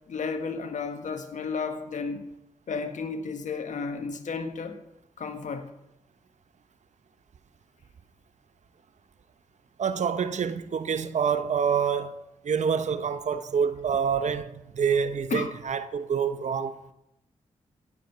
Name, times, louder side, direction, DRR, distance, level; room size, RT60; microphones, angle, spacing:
voice 1, 0.1-2.2 2.7-4.8 5.2-5.7 15.3-15.6, left 4 dB, 70° left, 1.8 m, -32 dB
voice 2, 9.8-12.1 12.4-16.9, right 7 dB, 65° right, 0.9 m, -27 dB
16.5 x 7.7 x 5.7 m
supercardioid pair, 40°, 13 cm